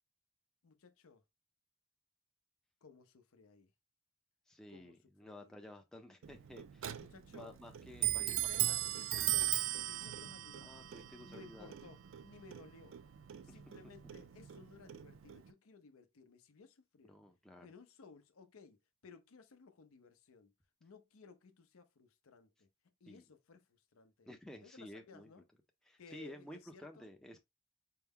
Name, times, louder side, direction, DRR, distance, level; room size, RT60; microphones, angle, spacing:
voice 1, 0.6-1.2 2.8-3.7 4.7-5.0 5.2-5.5 6.9-7.6 8.0-10.9 11.2-13.0 13.4-17.2 17.6-18.8 19.0-20.5 20.8-22.7 23.0-24.3 24.6-25.4 26.0-27.1, left 5 dB, 75° left, 0.6 m, -58 dB
voice 2, 4.5-7.0 7.3-9.0 10.6-11.7 13.5-13.6 17.0-17.7 23.1-23.2 24.3-25.3 25.9-27.4, left 1 dB, 5° left, 0.4 m, -53 dB
Clock, 6.2-15.5, right 13 dB, 65° right, 0.3 m, -39 dB
4.4 x 2.1 x 3.5 m
head